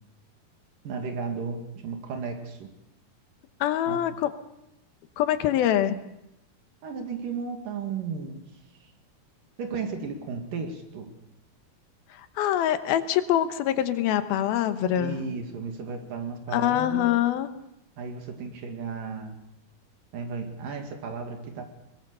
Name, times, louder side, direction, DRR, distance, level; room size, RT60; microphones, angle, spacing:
voice 1, 0.8-2.7 3.9-4.0 6.8-8.4 9.6-11.1 14.9-17.2 18.0-19.4 20.1-21.7, right 5 dB, 65° right, 4 dB, 3.8 m, -34 dB
voice 2, 3.6-4.3 5.2-6.0 12.1-15.2 16.5-17.5, left 11 dB, 90° left, 10 dB, 3.0 m, -24 dB
22.5 x 20.5 x 6.8 m, 0.84 s
omnidirectional pair, 4.2 m